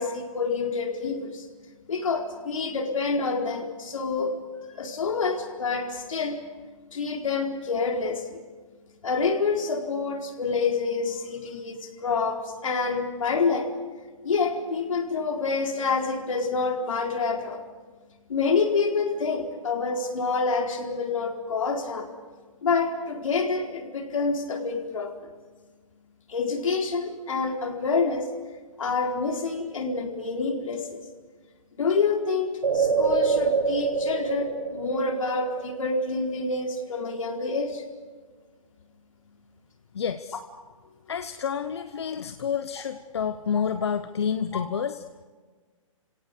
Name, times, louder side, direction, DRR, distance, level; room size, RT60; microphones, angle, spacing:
voice 1, 0.0-1.4 1.9-4.4 4.8-6.4 6.9-8.4 9.0-13.7 14.2-17.6 18.3-22.1 22.6-25.3 26.3-28.3 28.8-31.0 31.8-37.8 44.5-44.6, left 4 dB, 70° left, 2 dB, 4.4 m, -27 dB
sound 1, 32.6-36.3 36.7-36.8, right 5 dB, 80° right, 7.7 m, -26 dB
voice 2, 39.9-40.4 41.1-45.0, left 7 dB, 50° left, 10 dB, 0.9 m, -29 dB
30.0 x 17.5 x 6.9 m, 1.4 s
hypercardioid pair, 175°, 18 cm